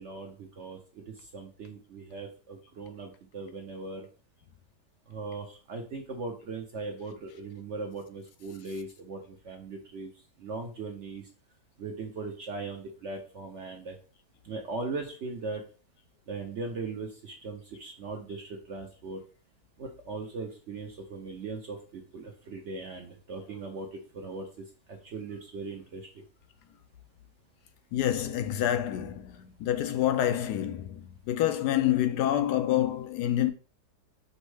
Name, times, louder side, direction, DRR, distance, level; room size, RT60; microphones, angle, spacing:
voice 1, 0.0-4.1 5.1-10.1 10.4-11.2 11.8-14.0 14.4-15.7 16.3-19.2 19.8-26.2, right 3 dB, 60° right, 0.8 m, -39 dB
voice 2, 27.9-29.3 29.6-30.9 31.3-33.5, left 12 dB, 75° left, 1.1 m, -27 dB
5.3 x 2.0 x 4.7 m
omnidirectional pair, 1.8 m